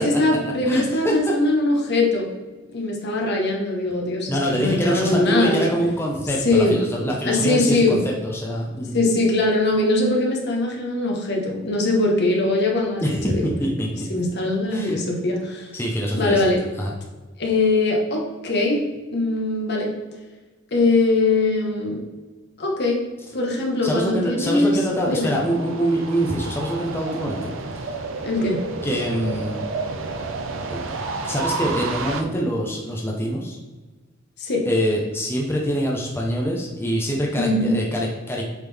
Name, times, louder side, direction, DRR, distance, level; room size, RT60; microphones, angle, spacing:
voice 1, 0.0-2.3 2.7-5.7 6.4-6.8 7.2-8.0 8.9-13.5 14.1-15.7 16.1-16.6 17.4-18.8 19.1-19.9 20.7-22.0 22.6-23.0 23.3-24.8 25.0-25.4 28.2-28.6 34.4-34.6 37.4-37.7, left 2 dB, 60° left, 0 dB, 1.3 m, -21 dB
voice 2, 0.6-1.1 4.3-9.0 13.0-14.1 14.7-15.0 15.7-16.5 16.8-16.9 23.8-27.9 28.8-29.6 30.7-30.8 31.2-33.6 34.7-38.4, equal, 10° left, -2 dB, 0.8 m, -24 dB
sound 1, 24.6-32.2, right 3 dB, 75° right, 0.7 m, -31 dB
7.9 x 3.7 x 3.5 m, 1.2 s
head